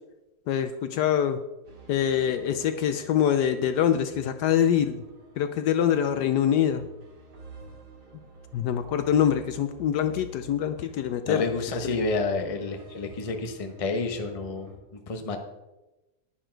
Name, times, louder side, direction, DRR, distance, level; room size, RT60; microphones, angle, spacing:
voice 1, 0.5-1.4 1.9-5.0 5.4-6.8 8.5-11.4, left 9 dB, 70° left, 10 dB, 1.1 m, -24 dB
sound 1, 1.6-14.8, right 5 dB, 60° right, 2.6 m, -48 dB
voice 2, 11.3-14.7 15.1-15.4, left 3 dB, 25° left, 6 dB, 0.8 m, -29 dB
10.0 x 10.0 x 4.5 m, 1.0 s
omnidirectional pair, 2.0 m